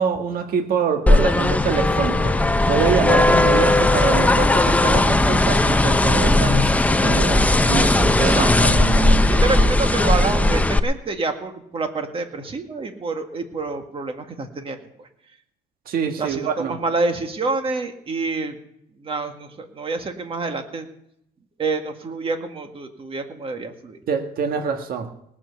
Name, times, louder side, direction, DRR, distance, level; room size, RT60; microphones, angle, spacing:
voice 1, 0.0-9.3 15.8-16.7 24.1-25.1, right 6 dB, 60° right, 5 dB, 1.7 m, -25 dB
sound 1, 1.1-10.8, left 2 dB, 10° left, 0.7 m, -17 dB
voice 2, 8.2-8.8 9.2-15.1 16.2-18.6 19.0-20.9 21.6-24.0, right 3 dB, 35° right, 6 dB, 2.0 m, -27 dB
19.0 x 7.5 x 6.9 m, 0.75 s
cardioid pair, 110°, 17 cm